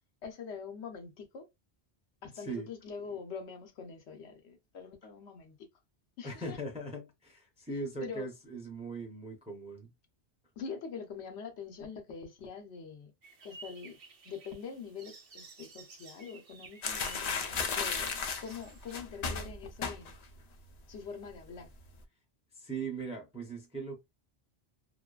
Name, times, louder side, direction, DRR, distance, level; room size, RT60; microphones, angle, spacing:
voice 1, 0.2-1.5 2.2-5.5 6.2-6.6 8.0-8.3 10.6-13.1 13.4-14.0 14.2-20.2 20.9-21.7, left 5 dB, 85° left, 1.0 m, -44 dB
voice 2, 2.3-2.7 6.2-9.9 22.5-24.0, right 3 dB, 10° right, 0.4 m, -40 dB
sound 1, 13.2-19.0, right 4 dB, 60° right, 0.9 m, -53 dB
sound 2, 16.8-20.4 20.6-21.0 21.3-21.9, left 5 dB, 60° left, 0.4 m, -35 dB
2.6 x 2.2 x 2.3 m
omnidirectional pair, 1.1 m